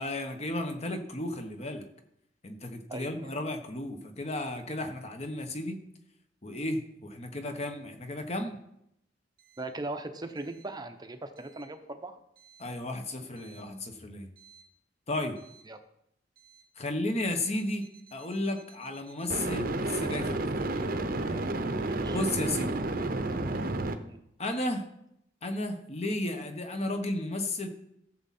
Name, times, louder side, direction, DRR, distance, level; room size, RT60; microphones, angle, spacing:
voice 1, 0.0-1.8 2.4-5.8 6.4-8.6 12.6-14.3 15.1-15.4 16.8-17.9 18.1-20.6 22.1-22.7 24.4-24.9 25.4-27.7, left 1 dB, 35° left, 6 dB, 1.2 m, -33 dB
voice 2, 2.9-3.3 9.6-12.2 15.7-15.8 21.7-22.2 24.0-24.2, right 2 dB, 20° right, 7 dB, 0.8 m, -39 dB
sound 1, 14.4-14.6 19.3-23.9, right 2 dB, 50° right, 0.8 m, -31 dB
14.5 x 7.4 x 4.3 m, 0.77 s
head